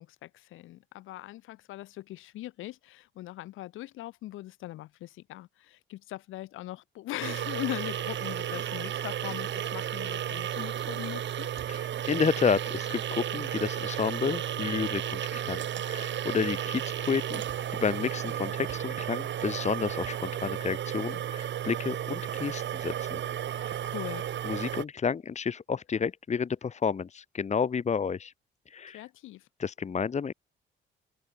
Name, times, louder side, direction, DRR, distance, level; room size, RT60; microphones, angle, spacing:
voice 1, 0.0-11.5 23.6-24.2 28.9-29.5, left 15 dB, 90° left, 7.0 m, -40 dB
sound 1, 7.2-24.8, right 10 dB, 65° right, 4.5 m, -33 dB
voice 2, 11.7-23.2 23.5-23.7 24.4-28.3 28.7-29.1 29.6-30.3, left 6 dB, 35° left, 1.2 m, -31 dB
open air
cardioid pair, 90°, 20 cm